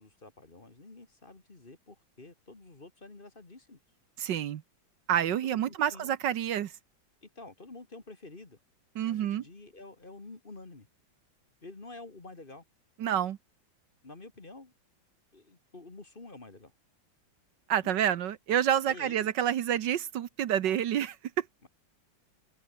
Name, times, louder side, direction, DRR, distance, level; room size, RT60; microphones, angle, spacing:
voice 1, 0.0-3.8 5.4-6.1 7.2-8.6 9.1-10.9 11.6-12.6 14.0-14.7 15.3-16.7 17.8-18.1 18.9-19.3 20.6-20.8 21.6-21.7, left 2 dB, 30° left, 2.1 m, -49 dB
voice 2, 4.2-4.6 5.1-6.7 8.9-9.4 13.0-13.4 17.7-21.4, right 10 dB, 70° right, 1.5 m, -28 dB
omnidirectional pair, 2.0 m